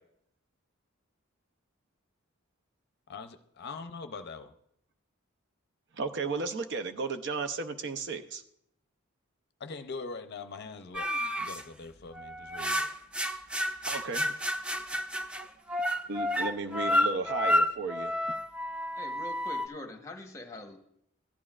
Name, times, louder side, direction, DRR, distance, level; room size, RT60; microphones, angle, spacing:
voice 1, 3.1-4.5 9.6-11.1 11.4-12.9, left 4 dB, 50° left, 9 dB, 0.6 m, -42 dB
voice 2, 5.9-8.4 13.9-14.3 16.1-18.2, right 4 dB, 60° right, 9 dB, 0.6 m, -34 dB
sound 1, 10.9-11.6 12.1-19.7, left 1 dB, 5° right, 0.4 m, -30 dB
voice 3, 19.0-20.8, left 1 dB, 15° left, 4 dB, 1.0 m, -43 dB
15.0 x 11.0 x 2.4 m, 0.73 s
head